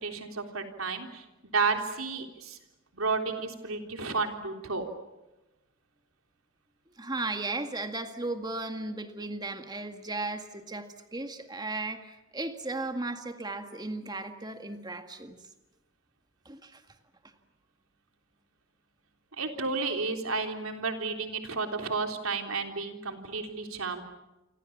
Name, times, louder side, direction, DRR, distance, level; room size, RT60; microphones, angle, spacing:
voice 1, 0.0-1.2 1.5-2.6 2.9-4.9 19.4-24.0, right 4 dB, 90° right, 4 dB, 3.6 m, -32 dB
voice 2, 7.0-15.4 16.5-16.8, right 2 dB, 20° right, 7 dB, 1.9 m, -36 dB
28.5 x 25.5 x 7.3 m, 1.0 s
head